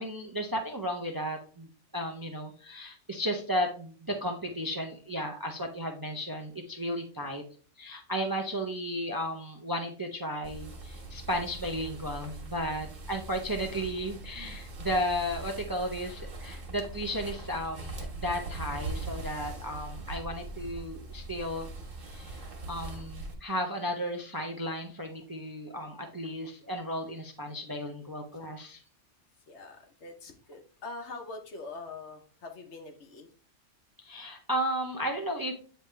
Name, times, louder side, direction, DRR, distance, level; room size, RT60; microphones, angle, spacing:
voice 1, 0.0-1.7 1.9-7.4 7.8-21.7 22.0-28.8 34.0-35.5, equal, 25° right, 3 dB, 0.5 m, -34 dB
sound 1, 10.4-23.3, right 2 dB, 90° right, 1.8 m, -41 dB
voice 2, 29.5-33.3, left 3 dB, 65° left, 5 dB, 1.3 m, -44 dB
8.8 x 3.5 x 3.3 m, 0.40 s
omnidirectional pair, 1.3 m